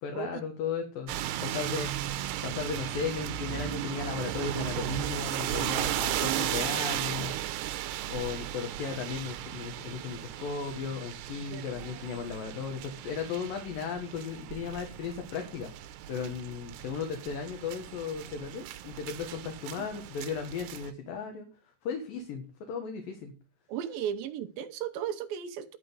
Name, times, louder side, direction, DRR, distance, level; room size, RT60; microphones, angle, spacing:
voice 1, 0.0-1.1 1.4-1.9 2.4-7.3 8.1-15.7 16.1-21.5 21.8-23.3, left 6 dB, 65° left, 2.9 m, -36 dB
sound 1, 1.1-20.9, right 13 dB, 90° right, 2.8 m, -36 dB
voice 2, 5.9-6.5 11.5-11.6 23.7-25.8, right 9 dB, 75° right, 2.4 m, -35 dB
11.5 x 5.1 x 7.9 m
omnidirectional pair, 4.6 m